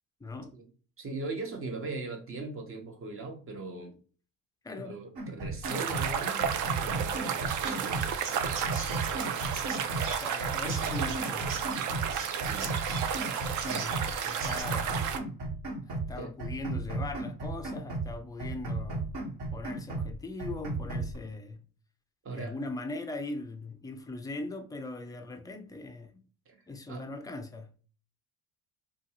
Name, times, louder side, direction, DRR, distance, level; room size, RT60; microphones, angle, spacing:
voice 1, 0.2-0.5 4.6-5.0 9.9-10.0 10.2-11.7 13.6-15.1 15.9-19.1 19.5-21.6 22.3-26.2 26.7-27.7, left 2 dB, 10° left, 0.4 m, -40 dB
voice 2, 1.0-4.0 4.8-6.5 6.8-9.4 12.4-12.8 16.2-16.3 22.2-22.6 26.5-26.6 26.9-27.1, right 3 dB, 30° right, 0.9 m, -40 dB
sound 1, 5.2-6.1 6.4-8.1 8.4-10.1 10.4-12.1 12.4-14.1 14.4-16.1 16.4-18.1 18.4-20.1 20.4-21.2, right 3 dB, 65° right, 1.3 m, -35 dB
sound 2, 5.6-15.2, right 8 dB, 50° right, 0.5 m, -32 dB
Chirp tweet, 7.5-14.6, right 4 dB, 80° right, 0.8 m, -43 dB
2.5 x 2.4 x 2.8 m
hypercardioid pair, 75°, 41 cm